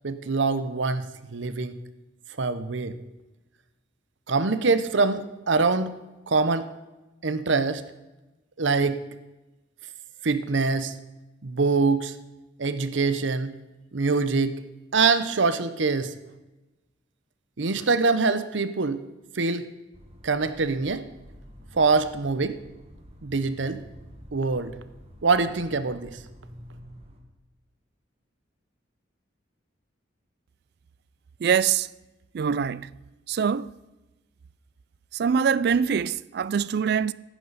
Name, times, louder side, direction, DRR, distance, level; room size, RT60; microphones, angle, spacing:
voice 1, 0.0-1.8 2.4-3.0 4.3-5.9 6.3-6.7 7.2-7.8 8.6-9.0 10.2-10.9 11.4-12.2 12.6-13.6 13.9-14.6 14.9-16.1 17.6-19.0 19.3-19.7 20.2-21.1 21.7-22.6 23.2-23.8 24.3-24.7 25.2-26.2, right 4 dB, 75° right, 0.8 m, -24 dB
sound 1, 19.9-27.2, equal, 35° right, 1.7 m, -48 dB
voice 2, 31.4-31.9 32.3-32.9 33.3-33.7 35.1-37.1, right 7 dB, 55° right, 0.3 m, -24 dB
15.0 x 11.0 x 4.1 m
head